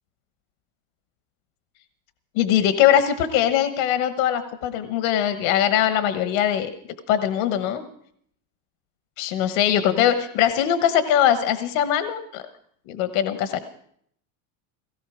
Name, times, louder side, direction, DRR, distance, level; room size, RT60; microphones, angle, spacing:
voice 1, 2.3-6.7 7.1-7.8 9.2-12.4 12.9-13.6, left 10 dB, 80° left, 10 dB, 1.1 m, -21 dB
17.5 x 15.5 x 4.9 m, 0.67 s
supercardioid pair, 125°, 40 cm